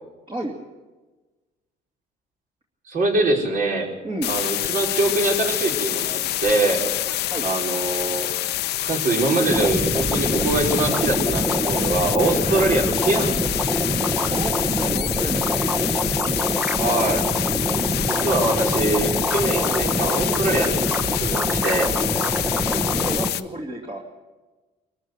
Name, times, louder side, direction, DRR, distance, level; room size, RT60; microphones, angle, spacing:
voice 1, 2.9-3.9 4.3-6.8 7.4-8.3 8.8-13.3 16.8-17.2 18.0-20.9 21.1-21.9, right 2 dB, 55° right, 0 dB, 5.0 m, -23 dB
voice 2, 4.0-4.3 7.3-7.5 14.3-15.8 17.5-18.0 19.6-19.8 22.7-24.0, right 1 dB, 30° right, -1 dB, 2.7 m, -32 dB
sound 1, 4.2-23.4, left 15 dB, 75° left, 0.9 m, -26 dB
sound 2, 9.5-23.3, equal, 5° right, 1.0 m, -25 dB
23.5 x 14.0 x 8.0 m, 1.2 s
cardioid pair, 110°, 17 cm